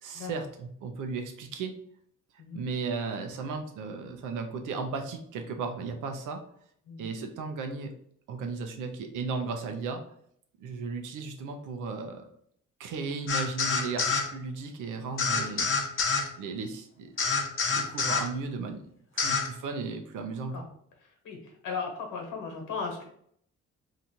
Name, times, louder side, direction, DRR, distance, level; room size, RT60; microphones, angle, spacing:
voice 1, 0.0-1.7 2.5-6.4 7.0-7.9 8.3-10.0 10.6-12.2 12.8-17.1 17.7-18.8 19.1-20.7, right 4 dB, 85° right, 5 dB, 0.7 m, -35 dB
sound 1, 13.3-14.3 15.2-16.3 17.2-18.3 19.2-19.5, left 5 dB, 45° left, 0.7 m, -27 dB
voice 2, 21.2-23.1, left 5 dB, 85° left, 1 dB, 1.2 m, -36 dB
2.9 x 2.5 x 4.3 m, 0.66 s
cardioid pair, 90°, 30 cm